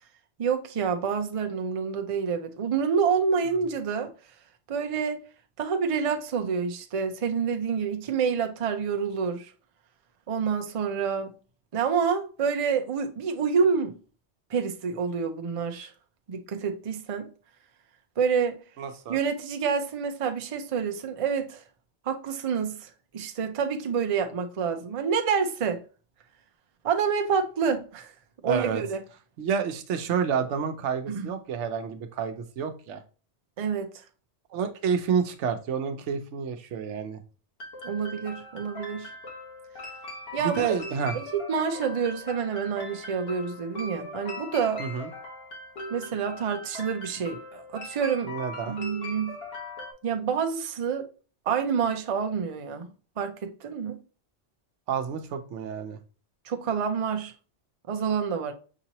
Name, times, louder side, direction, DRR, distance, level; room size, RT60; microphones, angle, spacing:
voice 1, 0.4-4.1 4.7-5.2 5.6-9.5 10.3-11.3 11.7-13.9 14.5-15.9 16.3-17.3 18.2-18.6 19.1-21.6 22.1-25.8 26.8-28.1 28.4-29.0 31.1-31.3 33.6-33.9 37.8-39.1 40.3-40.6 41.1-44.8 45.9-48.3 48.6-49.4 50.0-51.1 51.5-52.9 53.2-54.0 56.5-57.3 57.9-58.5, right 6 dB, 45° right, 0.5 m, -28 dB
voice 2, 18.8-19.2 28.5-28.8 29.4-33.0 34.5-37.2 40.4-41.2 44.8-45.1 48.2-48.8 54.9-56.0, right 7 dB, 85° right, 1.0 m, -29 dB
sound 1, 37.6-49.9, left 2 dB, 60° left, 1.3 m, -40 dB
5.9 x 2.8 x 2.8 m
omnidirectional pair, 1.2 m